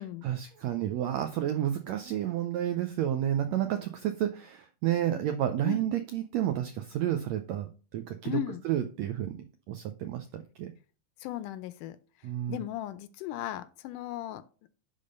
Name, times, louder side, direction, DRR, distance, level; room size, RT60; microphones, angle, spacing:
voice 1, 0.2-10.7 12.2-12.6, right 11 dB, 80° right, 8 dB, 1.5 m, -31 dB
voice 2, 8.3-8.6 11.2-12.0 12.5-14.4, left 14 dB, 80° left, 14 dB, 2.0 m, -36 dB
10.0 x 3.7 x 5.3 m, 0.36 s
omnidirectional pair, 3.9 m